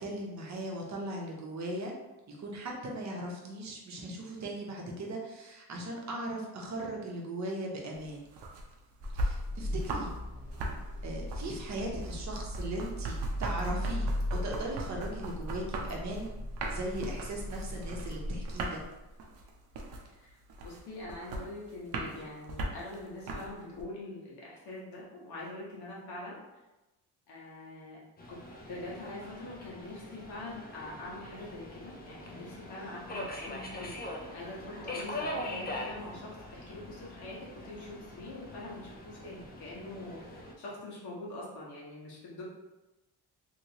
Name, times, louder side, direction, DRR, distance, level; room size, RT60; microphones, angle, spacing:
voice 1, 0.0-1.9 2.3-8.3 9.1-10.1 11.0-18.8, right 1 dB, 45° right, -1 dB, 0.8 m, -38 dB
sound 1, 7.9-10.2 10.4-23.8, right 1 dB, 90° right, 0.7 m, -39 dB
Car / Engine starting, 9.0-19.0, equal, 45° left, 0.8 m, -38 dB
voice 2, 20.2-26.4 27.3-28.0 28.3-28.4 28.7-33.9 34.3-42.4, left 2 dB, 80° left, -5 dB, 1.2 m, -44 dB
Subway metro underground, 28.2-40.5, left 1 dB, 25° left, 0.4 m, -42 dB
3.0 x 2.9 x 2.8 m, 1.0 s
cardioid pair, 140°, 39 cm